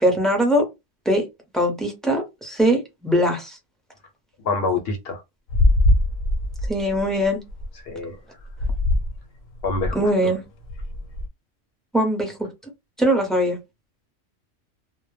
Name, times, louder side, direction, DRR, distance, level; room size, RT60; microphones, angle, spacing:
voice 1, 0.0-0.6 1.1-1.3 1.5-3.6 6.7-7.4 9.9-10.4 11.9-12.5 13.0-13.6, equal, ahead, 0.5 m, -21 dB
voice 2, 4.4-5.2 7.9-8.2 9.6-10.3, left 3 dB, 60° left, 0.7 m, -26 dB
sound 1, 5.5-7.7 8.5-9.2 9.5-10.1 10.6-11.3, left 1 dB, 85° left, 1.0 m, -22 dB
2.1 x 2.1 x 3.1 m
omnidirectional pair, 1.3 m